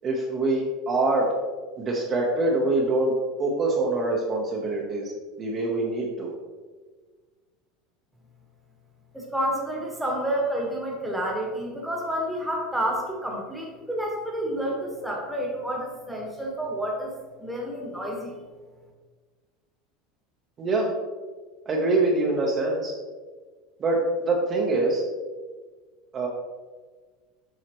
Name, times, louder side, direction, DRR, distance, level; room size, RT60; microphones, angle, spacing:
voice 1, 0.0-1.3 1.8-3.1 3.4-5.1 5.4-6.3 20.6-20.9 21.7-22.9 23.8-25.0 26.1-26.3, right 2 dB, 25° right, -2 dB, 0.8 m, -24 dB
voice 2, 9.1-17.1 17.4-18.3, right 1 dB, ahead, -2 dB, 1.2 m, -29 dB
7.7 x 5.6 x 2.9 m, 1.4 s
supercardioid pair, 165°, 0 cm